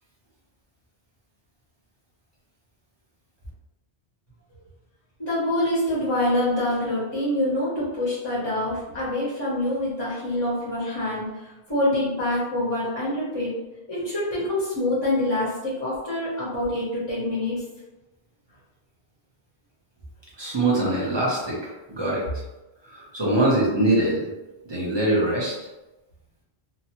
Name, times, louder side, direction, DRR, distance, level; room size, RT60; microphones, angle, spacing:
voice 1, 5.2-13.5 13.9-17.6, left 1 dB, 25° left, -8 dB, 0.7 m, -26 dB
voice 2, 20.4-22.2 22.9-24.3 24.7-25.5, right 1 dB, 30° right, -5 dB, 0.7 m, -23 dB
2.9 x 2.2 x 2.8 m, 1.0 s
omnidirectional pair, 1.1 m